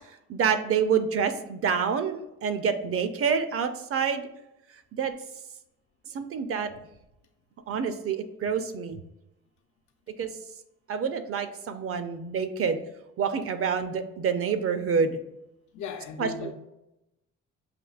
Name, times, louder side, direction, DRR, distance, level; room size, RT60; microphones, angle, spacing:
voice 1, 0.3-4.2 4.9-5.1 6.1-6.7 7.7-9.0 10.2-10.3 10.9-12.8 13.2-15.2 16.2-16.5, right 6 dB, 50° right, 0.5 m, -27 dB
voice 2, 15.7-16.5, left 6 dB, 75° left, 0.6 m, -36 dB
5.9 x 2.8 x 2.4 m
cardioid pair, 90°, 30 cm